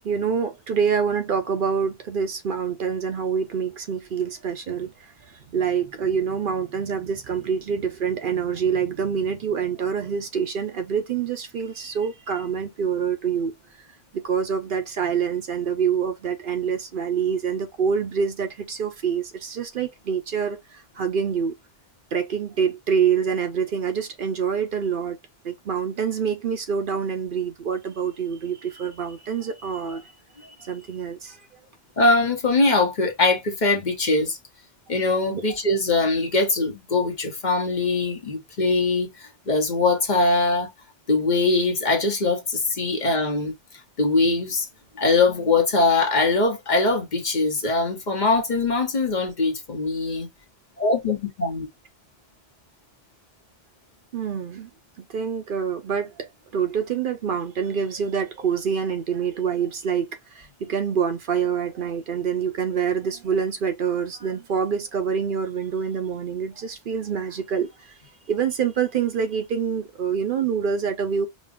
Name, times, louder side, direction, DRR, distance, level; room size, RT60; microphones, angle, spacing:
voice 1, 0.0-13.5 14.1-21.5 22.1-25.2 25.4-30.1 30.4-31.4 35.3-35.4 54.1-54.7 55.0-67.9 68.3-71.3, right 7 dB, 60° right, 0.7 m, -26 dB
voice 2, 32.0-34.4 34.9-40.7 41.1-43.5 44.0-44.7 45.0-50.3 50.8-51.7, left 3 dB, 50° left, 1.0 m, -22 dB
5.1 x 2.3 x 2.4 m
omnidirectional pair, 1.1 m